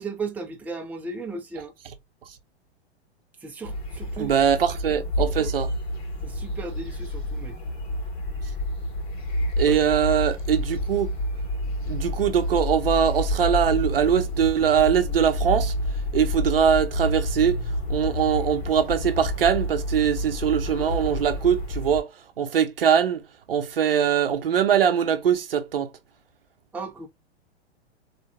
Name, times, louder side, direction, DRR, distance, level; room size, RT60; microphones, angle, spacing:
voice 1, 0.0-1.7 3.4-4.3 4.9-5.3 6.2-7.6 9.7-9.8 26.7-27.1, right 3 dB, 5° right, 0.7 m, -36 dB
sound 1, 3.6-22.0, left 1 dB, 50° left, 2.6 m, -29 dB
voice 2, 4.2-5.7 9.6-11.1 11.9-15.7 16.1-17.6 17.9-22.1 22.4-25.9, right 8 dB, 60° right, 0.8 m, -22 dB
4.5 x 3.2 x 2.7 m
figure-of-eight pair, 105°, 33 cm